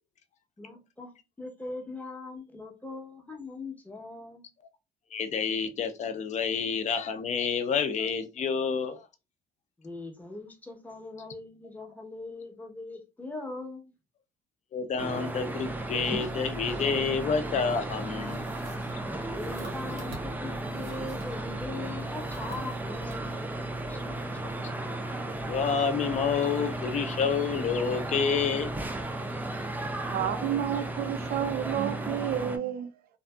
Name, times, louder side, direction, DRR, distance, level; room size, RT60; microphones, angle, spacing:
voice 1, 0.6-1.1 1.4-4.4 9.8-13.9 19.3-23.4 23.9-24.6, left 2 dB, 10° left, 0.8 m, -41 dB
voice 2, 5.1-9.1 14.7-18.5 24.4-24.7 25.5-28.7 29.0-29.2, left 6 dB, 45° left, 0.5 m, -29 dB
sound 1, 15.0-32.6, right 2 dB, 10° right, 0.4 m, -34 dB
sound 2, 18.2-21.5 21.9-23.2, right 2 dB, 90° right, 1.2 m, -51 dB
voice 3, 30.1-32.9, right 10 dB, 65° right, 0.4 m, -30 dB
2.6 x 2.5 x 2.2 m
cardioid pair, 110°, 17 cm